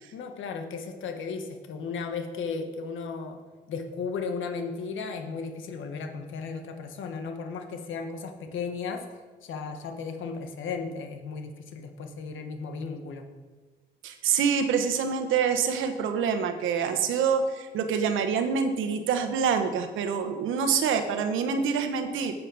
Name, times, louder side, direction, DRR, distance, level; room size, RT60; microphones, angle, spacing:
voice 1, 0.1-3.4 3.7-9.0 9.4-13.2, left 5 dB, 80° left, 6 dB, 1.4 m, -35 dB
voice 2, 14.0-22.3, right 6 dB, 85° right, 7 dB, 1.2 m, -26 dB
9.3 x 7.7 x 6.3 m, 1.3 s
cardioid pair, 90°, 20 cm